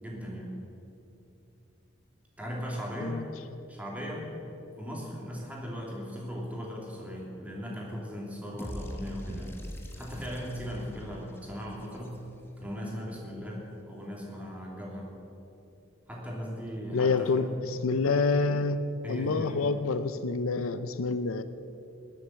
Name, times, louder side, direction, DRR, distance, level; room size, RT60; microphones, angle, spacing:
voice 1, 0.0-0.5 2.4-3.2 3.7-4.3 4.8-9.5 10.0-12.2 12.6-15.1 16.1-17.6 19.0-19.7, equal, 5° right, -3 dB, 3.0 m, -38 dB
sound 1, 8.6-12.7, equal, 10° left, 1.2 m, -42 dB
voice 2, 16.9-21.4, left 4 dB, 80° left, 12 dB, 0.6 m, -27 dB
21.0 x 7.9 x 7.6 m, 2.7 s
head